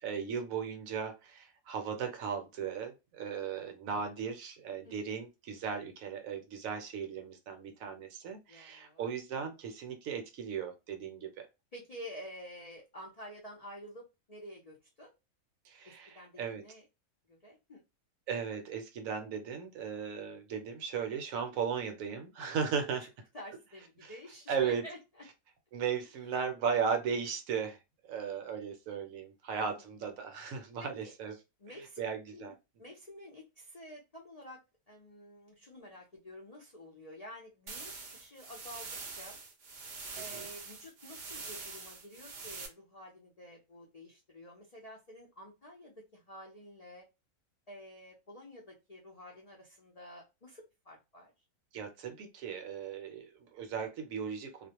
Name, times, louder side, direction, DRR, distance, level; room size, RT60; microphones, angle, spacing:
voice 1, 0.0-11.5 15.6-16.6 18.3-23.0 24.0-24.1 24.5-24.8 25.7-27.8 28.1-31.4 32.0-32.5 40.3-40.5 51.7-54.7, right 6 dB, 70° right, 1.0 m, -36 dB
voice 2, 8.5-9.1 11.7-15.1 15.8-16.8 17.3-17.8 22.4-22.6 23.3-25.2 29.5-29.7 30.8-31.1 31.6-32.0 32.3-34.6 34.9-39.4 40.1-47.0 47.7-51.3, equal, 60° left, 0.4 m, -50 dB
sound 1, 37.7-42.7, right 4 dB, 85° right, 0.4 m, -44 dB
2.4 x 2.1 x 2.8 m
omnidirectional pair, 1.6 m